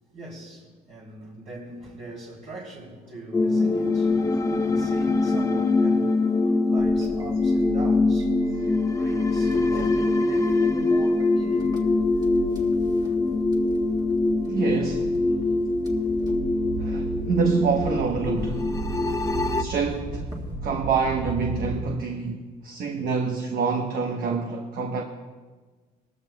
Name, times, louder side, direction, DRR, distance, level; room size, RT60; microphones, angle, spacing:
voice 1, 0.1-11.7 12.4-12.5 13.0-13.1 15.3-15.5 16.0-16.1 19.5-19.6 22.9-23.2, right 2 dB, 45° right, -5 dB, 2.9 m, -41 dB
sound 1, 3.3-19.6, left 3 dB, 20° left, 0.7 m, -23 dB
sound 2, 6.8-22.0, right 2 dB, 25° right, 1.6 m, -36 dB
voice 2, 14.5-15.1 16.8-18.8 19.6-20.3 20.6-25.0, right 5 dB, 60° right, 3 dB, 1.1 m, -27 dB
19.5 x 14.0 x 2.3 m, 1.4 s
cardioid pair, 110°, 17 cm